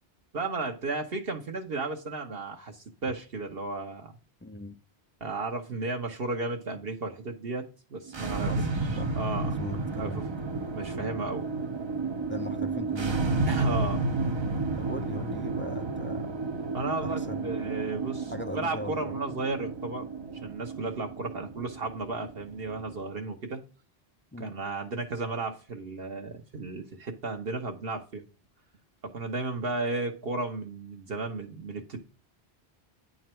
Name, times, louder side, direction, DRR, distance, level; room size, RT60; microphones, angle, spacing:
voice 1, 0.3-4.1 5.2-8.5 9.1-9.5 10.0-10.3 10.7-11.5 13.5-14.1 16.7-20.1 20.4-23.6 24.4-28.2 29.0-32.0, right 3 dB, 60° right, 1.2 m, -34 dB
voice 2, 4.4-4.7 8.5-8.7 9.0-9.2 9.4-10.2 12.3-13.3 14.8-16.3 17.0-17.6 18.3-19.2 24.3-24.5, left 1 dB, 20° left, 0.3 m, -39 dB
sound 1, 8.1-23.0, right 3 dB, 35° right, 0.5 m, -32 dB
9.4 x 3.9 x 4.4 m
omnidirectional pair, 1.1 m